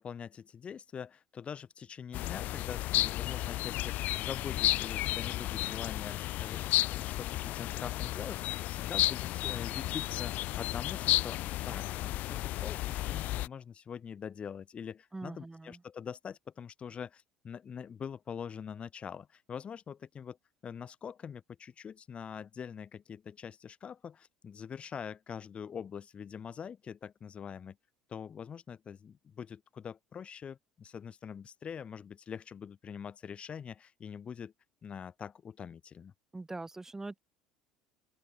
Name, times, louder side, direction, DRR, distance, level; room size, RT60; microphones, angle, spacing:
voice 1, 0.0-20.4 20.6-27.8 28.1-34.5 34.8-36.1, left 7 dB, 35° left, 2.9 m, -44 dB
sound 1, 2.1-13.5, left 16 dB, 55° left, 0.4 m, -33 dB
voice 2, 15.1-15.8 36.3-37.2, right 2 dB, 15° right, 5.7 m, -42 dB
open air
hypercardioid pair, 70°, 3 cm